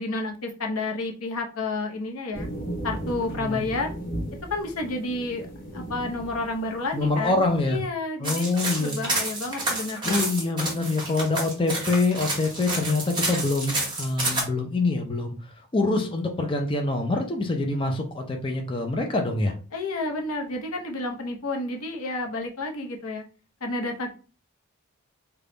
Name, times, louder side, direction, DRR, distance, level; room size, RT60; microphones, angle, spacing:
voice 1, 0.0-2.5 2.8-3.9 4.5-5.5 5.7-10.3 19.7-23.2 23.6-24.1, left 2 dB, 90° left, 3 dB, 0.8 m, -30 dB
sound 1, 2.3-7.9, right 1 dB, 40° left, 1.0 m, -36 dB
voice 2, 3.3-3.7 6.9-7.8 8.2-9.0 10.0-15.3 15.7-19.5, left 2 dB, 25° left, 3 dB, 0.5 m, -25 dB
sound 2, 8.2-14.4, right 2 dB, 20° right, 1.2 m, -29 dB
3.4 x 2.3 x 3.8 m, 0.36 s
head